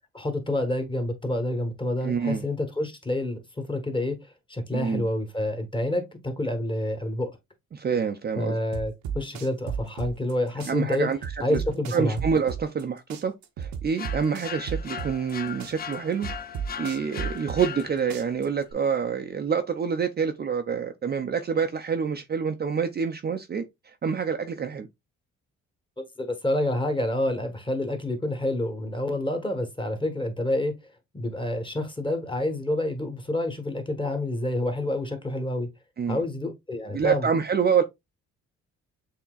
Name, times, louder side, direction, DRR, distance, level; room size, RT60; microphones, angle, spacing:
voice 1, 0.1-7.3 8.4-11.1 11.4-12.2 26.0-30.7 31.1-35.7 36.1-37.3, left 1 dB, 15° left, 1.3 m, -28 dB
voice 2, 2.0-2.4 4.7-5.1 7.7-8.6 10.7-11.6 11.9-16.3 16.8-24.9 36.0-36.2 36.9-37.8, right 6 dB, 35° right, 0.5 m, -27 dB
sound 1, 8.7-10.3 10.6-12.8 13.1-15.3 15.6-17.8 18.1-18.7, right 7 dB, 70° right, 0.8 m, -33 dB
sound 2, 14.0-18.3, left 8 dB, 30° left, 0.5 m, -38 dB
7.0 x 2.9 x 2.3 m
cardioid pair, 90°, 30 cm